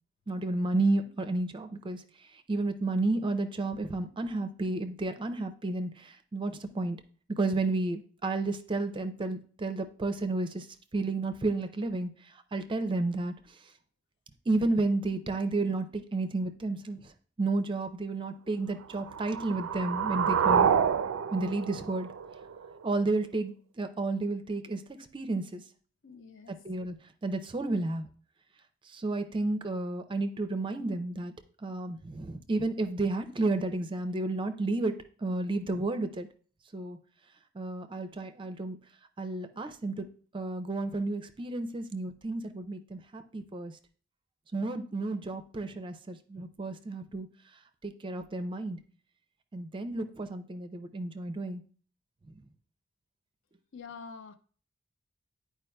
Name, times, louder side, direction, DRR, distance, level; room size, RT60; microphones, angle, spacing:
voice 1, 0.3-2.0 2.5-7.0 7.3-10.7 10.9-12.1 12.5-13.3 14.5-17.0 17.4-20.7 21.3-22.1 22.8-24.8 25.1-25.6 26.6-26.9 27.2-28.1 28.9-31.3 31.6-34.9 35.2-36.3 36.7-37.0 37.5-38.8 39.2-40.1 40.3-43.7 44.5-47.3 47.8-48.8 49.5-51.6, right 2 dB, 25° right, 0.4 m, -31 dB
sound 1, 18.9-22.9, right 7 dB, 85° right, 0.4 m, -28 dB
voice 2, 26.0-26.5 53.7-54.3, left 5 dB, 65° left, 0.6 m, -46 dB
9.7 x 4.6 x 2.2 m
head